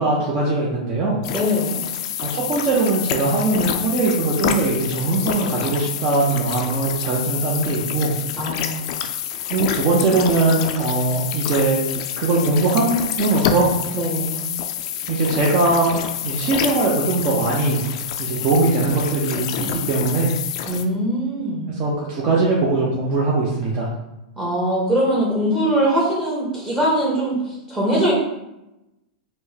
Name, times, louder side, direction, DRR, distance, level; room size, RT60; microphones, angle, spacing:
voice 1, 0.0-1.2 2.2-8.1 9.5-11.8 12.2-13.7 15.1-16.0 16.2-17.8 18.2-20.3 21.8-23.9, right 3 dB, 40° right, -4 dB, 0.7 m, -20 dB
sound 1, 1.2-20.8, left 9 dB, 55° left, 0.3 m, -27 dB
voice 2, 1.3-1.8 8.3-8.9 13.9-14.5 20.6-21.7 24.4-28.1, equal, 15° right, -6 dB, 0.9 m, -22 dB
4.4 x 2.1 x 2.8 m, 0.93 s
hypercardioid pair, 125°, 4 cm